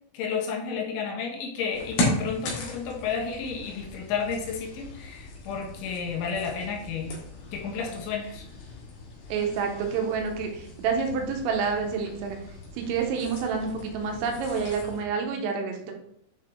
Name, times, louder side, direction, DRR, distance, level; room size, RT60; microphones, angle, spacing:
voice 1, 0.1-7.1 7.5-8.4, left 6 dB, 75° left, -1 dB, 3.6 m, -32 dB
sound 1, 1.7-15.0, left 2 dB, 60° left, 3.3 m, -37 dB
voice 2, 9.3-12.4 12.8-15.9, right 5 dB, 85° right, 3 dB, 3.6 m, -28 dB
8.8 x 4.6 x 3.4 m, 0.72 s
omnidirectional pair, 5.8 m